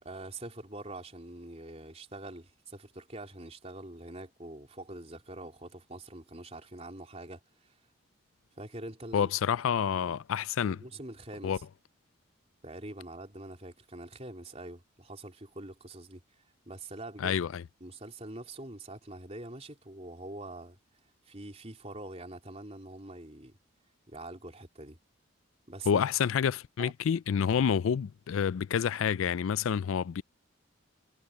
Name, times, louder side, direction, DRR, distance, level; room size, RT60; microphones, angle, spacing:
voice 1, 0.0-7.7 8.6-9.3 9.9-10.2 10.6-11.6 12.6-16.2 16.7-17.3 17.8-20.8 21.3-23.6 24.1-25.0 25.7-26.0 26.8-26.9, right 2 dB, 30° right, 3.8 m, -44 dB
voice 2, 9.1-10.8 11.4-11.6 17.2-17.6 25.9-30.2, left 7 dB, 80° left, 0.4 m, -28 dB
head